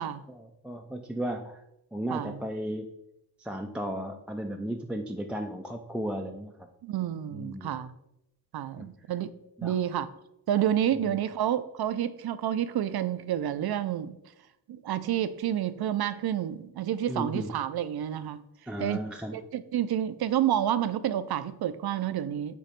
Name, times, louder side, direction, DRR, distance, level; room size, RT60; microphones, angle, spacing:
voice 1, 0.3-1.6 1.9-2.9 3.4-6.7 7.3-7.7 8.8-8.9 9.6-9.8 10.9-11.2 17.1-17.5 18.7-19.4, right 1 dB, 5° right, 3 dB, 0.3 m, -35 dB
voice 2, 6.8-7.9 8.5-9.3 9.6-10.1 10.5-14.2 14.7-18.4 18.8-19.0 19.3-22.6, right 10 dB, 80° right, 13 dB, 0.6 m, -29 dB
8.5 x 3.0 x 5.1 m, 0.85 s
wide cardioid pair, 130°, 37 cm